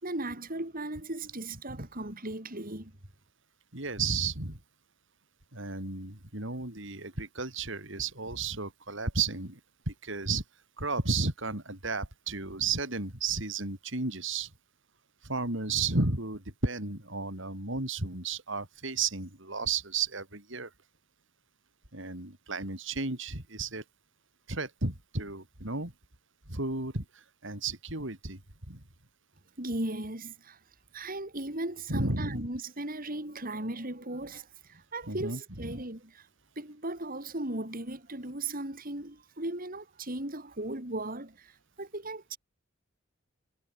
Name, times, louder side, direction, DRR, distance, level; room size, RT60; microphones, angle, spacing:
voice 1, 0.0-2.9 29.6-30.6 30.9-36.3 36.5-42.4, right 2 dB, 45° right, 4.9 m, -37 dB
voice 2, 3.7-4.6 5.5-9.6 9.9-10.4 10.8-14.5 15.2-20.7 21.9-23.8 24.5-25.9 26.5-28.4 28.7-28.8 31.9-32.5 35.1-35.8, right 4 dB, 65° right, 5.3 m, -33 dB
head